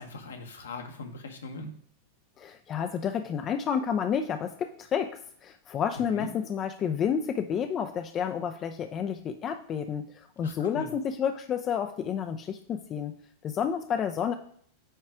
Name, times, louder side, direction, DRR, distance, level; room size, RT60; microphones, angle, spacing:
voice 1, 0.0-1.7 6.1-6.3 10.4-10.9, left 3 dB, 70° left, 4 dB, 1.3 m, -40 dB
voice 2, 2.4-13.1 13.4-14.3, left 7 dB, 30° left, 7 dB, 0.5 m, -30 dB
8.9 x 3.2 x 4.9 m, 0.62 s
figure-of-eight pair, 90°, 0 cm